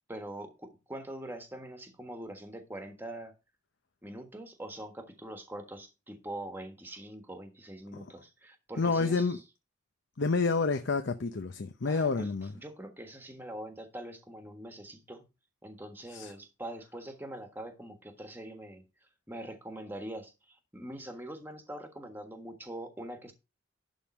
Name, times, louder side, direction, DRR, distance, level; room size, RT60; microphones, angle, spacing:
voice 1, 0.1-3.3 4.0-9.4 11.9-15.3 15.6-18.8 19.3-23.3, right 1 dB, 10° right, 1.4 m, -43 dB
voice 2, 8.8-9.4 10.2-12.5 16.1-16.3, left 4 dB, 65° left, 0.7 m, -29 dB
11.0 x 3.8 x 6.1 m
head